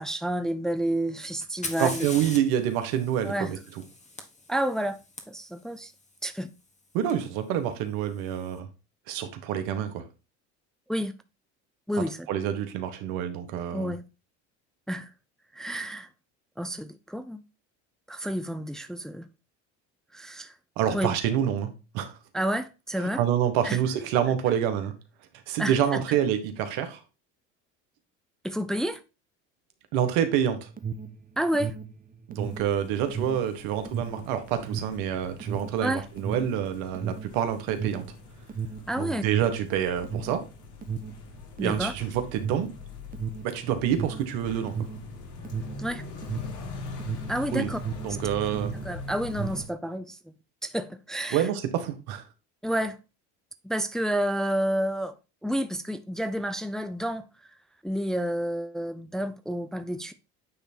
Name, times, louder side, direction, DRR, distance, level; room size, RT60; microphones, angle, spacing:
voice 1, 0.0-2.1 3.2-3.5 4.5-5.0 5.3-5.9 6.2-6.5 10.9-11.1 11.9-12.3 13.7-14.0 14.9-15.1 15.5-16.1 16.6-17.4 18.1-19.3 20.1-20.5 20.9-21.1 22.3-23.2 23.6-23.8 25.6-26.0 28.4-29.0 31.4-31.7 35.8-36.0 38.9-39.3 41.6-41.9 45.8-46.0 47.3-47.8 48.8-50.2 50.6-51.5 52.6-53.0 53.6-55.1 55.4-57.2 57.8-60.1, right 1 dB, ahead, 0.6 m, -30 dB
Fire, 1.4-5.2 7.1-7.2 8.0-8.4, left 2 dB, 20° left, 1.6 m, -40 dB
voice 2, 1.8-3.6 6.9-8.7 9.1-10.0 12.3-13.9 20.8-22.2 23.0-24.9 25.5-27.0 29.9-30.7 32.3-38.0 39.0-40.4 41.6-42.7 43.4-44.7 47.5-47.7 48.0-48.7 51.3-52.2, right 9 dB, 75° right, 1.4 m, -27 dB
Alarm, 30.6-48.2 48.5-49.8, right 6 dB, 25° right, 0.9 m, -35 dB
sound 1, 32.4-49.7, left 3 dB, 55° left, 2.2 m, -43 dB
9.2 x 3.4 x 4.3 m
supercardioid pair, 85°, 36 cm